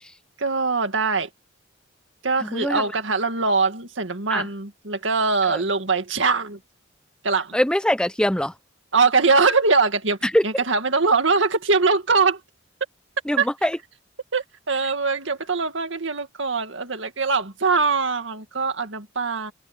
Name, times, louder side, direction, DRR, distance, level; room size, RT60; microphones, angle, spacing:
voice 1, 0.4-1.3 2.2-6.6 7.2-7.6 8.9-10.2 10.4-12.4 13.4-13.5 14.3-19.5, right 4 dB, 70° right, 2.1 m, -22 dB
voice 2, 2.4-2.8 4.3-4.5 5.5-5.6 7.5-8.5 10.2-10.4 13.3-13.8, left 1 dB, 5° left, 0.6 m, -22 dB
head